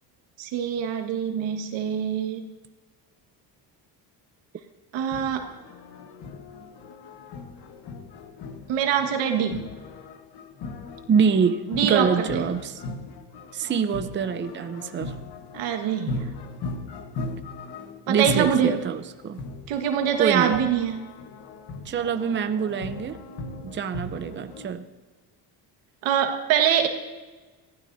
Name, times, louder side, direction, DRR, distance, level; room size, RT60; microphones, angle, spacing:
voice 1, 0.4-2.4 4.9-5.5 8.7-9.7 11.7-12.4 15.5-16.3 18.1-18.7 19.7-21.0 26.0-26.9, right 8 dB, 90° right, 5 dB, 1.8 m, -24 dB
sound 1, 4.9-24.7, left 3 dB, 60° left, 1.5 m, -38 dB
voice 2, 11.1-12.8 13.5-15.1 18.1-19.4 20.2-20.5 21.9-23.2 23.6-24.9, right 6 dB, 25° right, 9 dB, 0.7 m, -25 dB
24.5 x 15.5 x 2.7 m, 1.3 s
cardioid pair, 120°, 44 cm